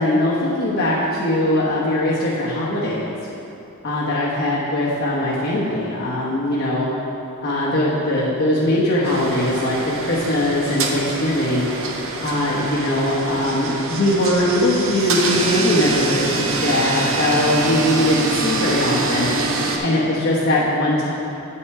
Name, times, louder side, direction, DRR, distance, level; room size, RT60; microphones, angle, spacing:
voice 1, 0.0-3.1 3.8-6.9 7.4-11.6 12.2-19.3 19.8-21.1, left 1 dB, 55° left, -8 dB, 1.2 m, -20 dB
sound 1, 9.0-19.8, right 3 dB, 65° right, 0.8 m, -25 dB
8.9 x 5.8 x 4.7 m, 2.9 s
head